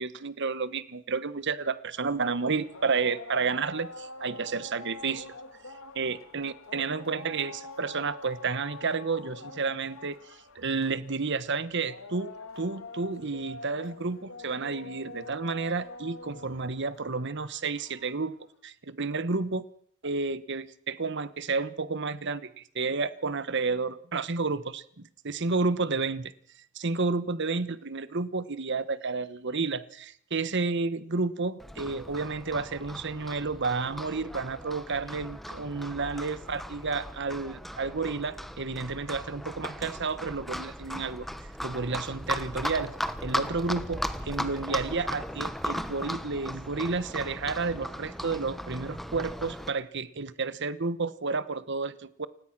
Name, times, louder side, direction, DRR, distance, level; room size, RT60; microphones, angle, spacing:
voice 1, 0.0-5.3 5.9-10.2 10.5-18.4 18.6-19.6 20.0-26.3 26.7-41.3 41.6-42.9 43.2-52.3, right 4 dB, 60° right, 15 dB, 1.2 m, -31 dB
sound 1, 2.0-18.4, left 3 dB, 75° left, 1.8 m, -45 dB
Livestock farm animals working animals, 31.6-49.7, equal, ahead, 1.1 m, -37 dB
29.0 x 16.5 x 6.1 m, 0.64 s
head